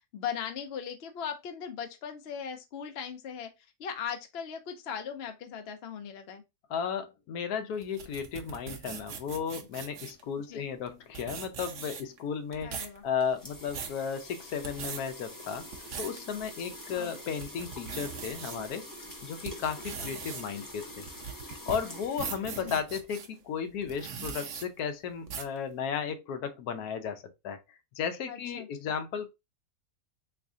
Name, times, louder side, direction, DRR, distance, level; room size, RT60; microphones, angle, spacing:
voice 1, 0.1-3.5 3.8-6.4 10.5-10.7 12.6-13.0 16.9-17.2 20.0-20.1 22.6-22.8 28.3-28.7, left 7 dB, 60° left, 0.7 m, -38 dB
voice 2, 6.7-12.7 13.0-15.6 16.0-18.9 19.2-21.1 21.7-27.6 28.0-29.3, left 7 dB, 75° left, 1.1 m, -34 dB
sound 1, 7.8-10.2 10.9-11.0 11.1-12.2 12.5-13.0 13.4-14.0 14.5-15.0 15.6-16.2 16.7-16.8 17.3-18.6 19.1-23.3 23.8-24.7 25.3-25.6, right 6 dB, 60° right, 0.9 m, -40 dB
sound 2, 12.9-23.2, left 1 dB, 30° left, 0.4 m, -46 dB
3.6 x 3.2 x 2.5 m
omnidirectional pair, 1.7 m